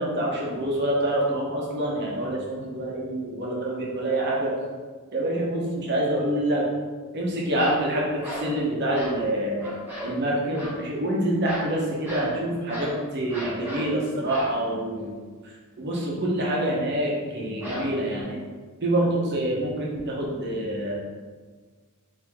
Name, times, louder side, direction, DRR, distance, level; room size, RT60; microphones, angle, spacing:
voice 1, 0.0-4.5 5.1-6.6 7.1-9.7 10.0-15.2 15.4-18.4 18.8-21.0, right 1 dB, 50° right, -3 dB, 1.0 m, -26 dB
sound 1, 7.5-7.9 8.2-8.5 8.9-9.2 9.6-10.2 10.5-10.8 11.4-11.8 12.0-12.4 12.7-13.0 13.3-13.9 14.3-14.6 17.6-18.2, equal, 10° right, 1.2 m, -35 dB
4.7 x 2.9 x 3.6 m, 1.5 s
head